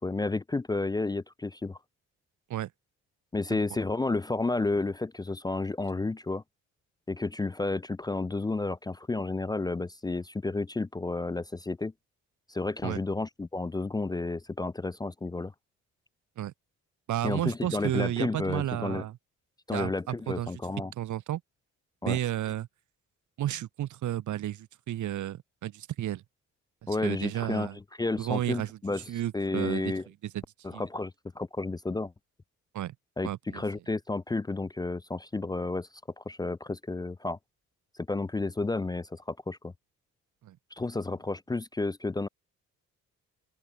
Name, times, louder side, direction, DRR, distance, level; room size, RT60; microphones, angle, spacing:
voice 1, 0.0-1.8 3.3-6.4 7.1-11.9 12.5-15.5 17.2-19.0 19.7-20.9 22.0-22.2 26.9-29.0 29.3-30.0 30.6-32.1 33.2-35.9 36.2-37.4 38.1-39.7 40.7-42.3, left 3 dB, 15° left, 0.4 m, -31 dB
voice 2, 17.1-19.2 19.7-20.5 21.0-21.4 22.0-22.7 23.4-26.2 26.8-27.8 28.2-28.8 29.1-29.9 30.2-30.4 30.7-30.8 32.7-32.9 33.2-33.6 40.4-40.6, right 12 dB, 75° right, 2.6 m, -32 dB
open air
cardioid pair, 90°, 30 cm